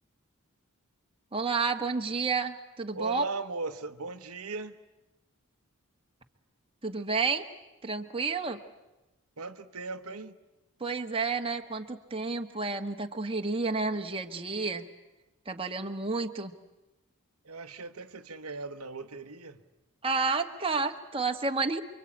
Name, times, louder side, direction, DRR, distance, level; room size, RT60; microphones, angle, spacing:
voice 1, 1.3-3.2 6.8-7.5 7.8-8.6 10.8-14.8 15.4-16.5 20.0-21.8, right 4 dB, 25° right, 4 dB, 1.4 m, -30 dB
voice 2, 2.9-4.8 9.4-10.4 17.4-19.6, right 3 dB, 75° right, 8 dB, 1.2 m, -38 dB
29.0 x 24.0 x 8.6 m, 0.98 s
head